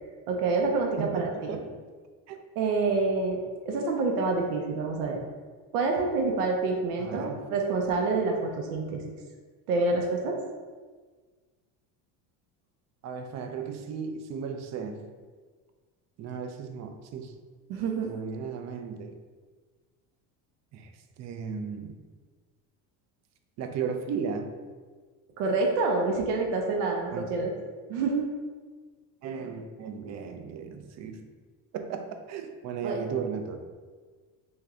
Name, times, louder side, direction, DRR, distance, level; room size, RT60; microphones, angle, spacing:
voice 1, 0.3-1.6 2.6-5.2 5.7-9.0 9.7-10.4 17.7-18.1 25.4-27.5 27.9-28.3 32.8-33.0, right 3 dB, 90° right, 1 dB, 0.7 m, -27 dB
voice 2, 1.0-1.8 2.3-2.4 7.0-7.5 13.0-15.1 16.2-17.3 18.0-19.2 20.7-20.9 21.2-22.0 23.6-24.5 27.1-27.3 29.2-31.3 31.7-33.6, right 6 dB, 40° right, 6 dB, 0.4 m, -35 dB
3.3 x 2.6 x 3.5 m, 1.5 s
supercardioid pair, 110°, 45 cm